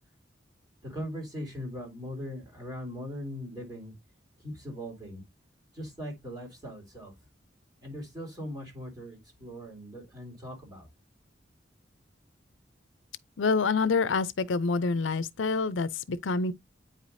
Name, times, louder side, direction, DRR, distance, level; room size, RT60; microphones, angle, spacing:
voice 1, 0.8-3.9 4.4-5.2 5.8-7.1 7.8-10.9, equal, 20° right, 2.9 m, -40 dB
voice 2, 13.4-16.5, left 4 dB, 85° left, 0.6 m, -27 dB
8.8 x 4.9 x 2.6 m
head